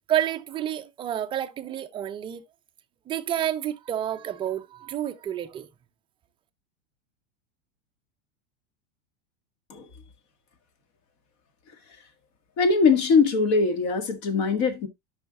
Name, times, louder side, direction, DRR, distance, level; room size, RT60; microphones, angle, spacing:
voice 1, 0.1-2.4 3.1-5.7, right 11 dB, 15° right, 0.5 m, -29 dB
voice 2, 12.6-14.9, left 4 dB, 45° left, 1.8 m, -21 dB
13.0 x 5.6 x 2.3 m
supercardioid pair, 155°, 34 cm